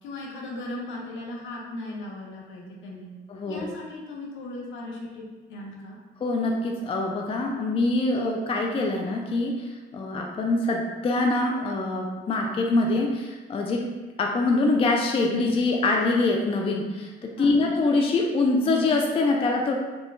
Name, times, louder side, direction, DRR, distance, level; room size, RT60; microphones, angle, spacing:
voice 1, 0.0-3.1 3.5-5.2 5.5-6.0 17.3-17.7, left 1 dB, 75° left, -2 dB, 0.7 m, -37 dB
voice 2, 3.3-3.7 6.2-13.8 14.2-19.7, left 2 dB, 30° left, 1 dB, 0.3 m, -24 dB
3.5 x 2.2 x 2.5 m, 1.2 s
cardioid pair, 90°, 20 cm